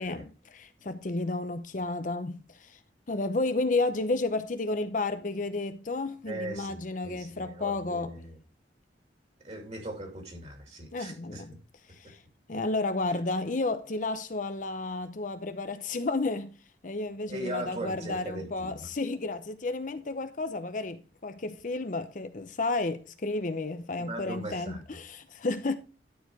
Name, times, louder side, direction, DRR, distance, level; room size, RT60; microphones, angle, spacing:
voice 1, 0.0-2.8 3.1-8.1 10.9-11.6 12.1-12.2 12.5-16.5 16.8-25.8, left 2 dB, 45° left, 0.7 m, -32 dB
voice 2, 6.2-8.4 9.4-11.6 17.3-18.9 24.0-24.8, right 1 dB, 40° right, 2.8 m, -39 dB
12.0 x 4.9 x 4.8 m
head